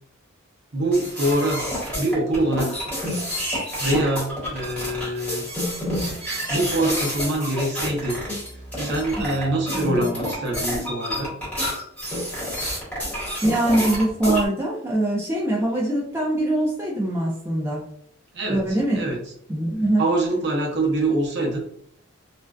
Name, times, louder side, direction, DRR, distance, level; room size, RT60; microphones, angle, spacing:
voice 1, 0.7-1.6 1.9-2.8 3.8-5.5 6.5-8.1 8.8-11.3 18.3-18.6 18.9-19.2 20.0-21.6, right 1 dB, 55° right, 0 dB, 0.6 m, -24 dB
sound 1, 0.9-14.5, equal, 5° left, 1.0 m, -28 dB
voice 2, 13.4-17.8 18.5-19.1 19.5-20.0, right 1 dB, 10° right, -4 dB, 0.4 m, -23 dB
2.5 x 2.2 x 2.2 m, 0.66 s
head